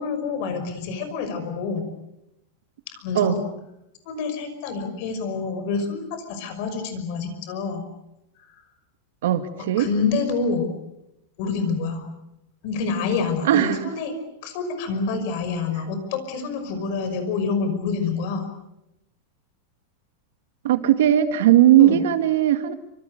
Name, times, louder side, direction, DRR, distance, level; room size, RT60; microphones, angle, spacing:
voice 1, 0.0-1.9 2.9-3.4 4.0-7.8 8.5-8.6 9.8-10.7 11.4-12.1 12.6-14.2 14.4-18.5 21.8-22.0, left 4 dB, 40° left, 8 dB, 5.7 m, -27 dB
voice 2, 9.2-9.9 13.4-13.9 20.6-22.8, right 12 dB, 65° right, 9 dB, 2.0 m, -18 dB
27.5 x 26.0 x 6.7 m, 0.86 s
supercardioid pair, 180°, 0 cm